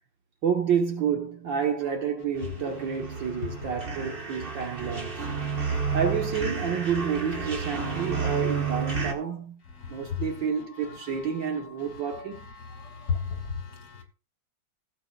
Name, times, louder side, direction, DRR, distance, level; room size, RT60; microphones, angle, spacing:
voice 1, 0.4-5.3 5.9-9.6 9.9-12.4, right 7 dB, 70° right, 2.1 m, -29 dB
sound 1, 2.3-9.1, right 5 dB, 30° right, 1.4 m, -31 dB
voice 2, 9.8-10.2 12.8-14.0, left 6 dB, 60° left, 3.1 m, -33 dB
15.5 x 7.7 x 2.5 m
omnidirectional pair, 2.1 m